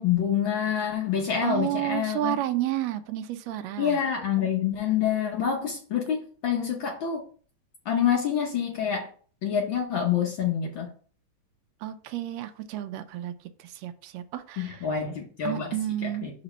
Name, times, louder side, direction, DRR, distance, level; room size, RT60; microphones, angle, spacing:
voice 1, 0.0-2.4 3.8-7.2 7.9-9.1 9.4-10.9 14.6-15.7 16.0-16.3, left 8 dB, 70° left, 1 dB, 1.1 m, -27 dB
voice 2, 1.4-4.0 11.8-13.3 13.6-14.9 15.4-16.3, right 13 dB, 75° right, 9 dB, 1.6 m, -31 dB
5.1 x 3.9 x 5.5 m, 0.44 s
omnidirectional pair, 3.3 m